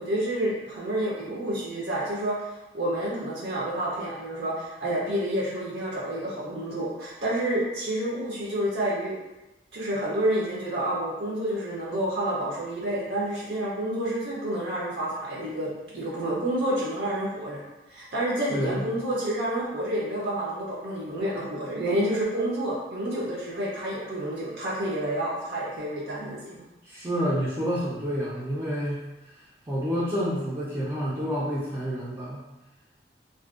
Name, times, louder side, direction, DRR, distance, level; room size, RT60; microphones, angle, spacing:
voice 1, 0.0-2.4 2.7-9.2 9.7-17.6 17.9-26.6, right 1 dB, 65° right, -7 dB, 0.6 m, -29 dB
voice 2, 18.5-18.8 26.8-29.0 29.7-32.4, equal, 15° right, -10 dB, 0.4 m, -28 dB
2.5 x 2.1 x 2.3 m, 1.0 s
head